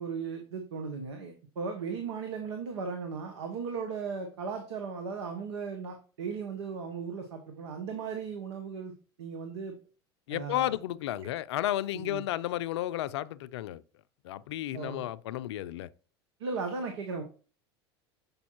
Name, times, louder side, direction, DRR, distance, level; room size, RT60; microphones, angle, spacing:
voice 1, 0.0-8.9 9.2-9.7 10.3-10.7 11.9-12.2 14.7-15.0 16.4-17.2, right 5 dB, 80° right, 1.0 m, -36 dB
voice 2, 10.3-13.8 14.2-15.9, left 13 dB, 75° left, 0.4 m, -33 dB
7.1 x 5.2 x 2.9 m
hypercardioid pair, 85°, 14 cm